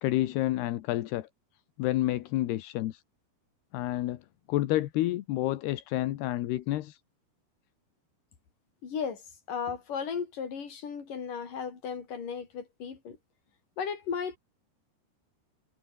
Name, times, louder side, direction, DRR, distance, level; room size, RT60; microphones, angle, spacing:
voice 1, 0.0-1.3 1.8-3.0 3.7-4.2 4.5-7.0, left 15 dB, 80° left, 3.1 m, -29 dB
voice 2, 8.8-9.2 9.5-13.2 13.8-14.4, left 6 dB, 55° left, 5.5 m, -35 dB
omnidirectional pair, 4.7 m